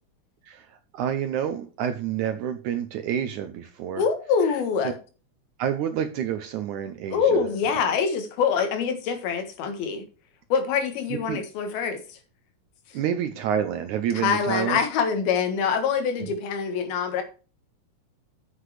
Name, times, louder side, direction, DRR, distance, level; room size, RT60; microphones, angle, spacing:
voice 1, 0.5-4.0 5.6-7.7 11.3-11.4 12.9-14.8, right 9 dB, 75° right, 9 dB, 1.8 m, -28 dB
voice 2, 4.0-5.0 7.1-10.0 10.5-12.2 14.2-17.2, left 6 dB, 85° left, 7 dB, 3.4 m, -25 dB
8.1 x 7.9 x 4.9 m, 0.35 s
omnidirectional pair, 4.3 m